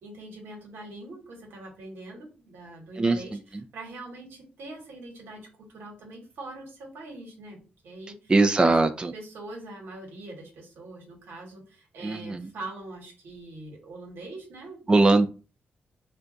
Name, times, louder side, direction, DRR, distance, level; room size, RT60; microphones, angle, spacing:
voice 1, 0.0-7.6 7.8-8.3 8.6-8.8 9.1-14.8, right 2 dB, 90° right, 1.1 m, -43 dB
voice 2, 8.3-9.1 12.0-12.5 14.9-15.3, right 3 dB, 25° right, 0.3 m, -20 dB
2.5 x 2.2 x 3.7 m
cardioid pair, 75°, 4 cm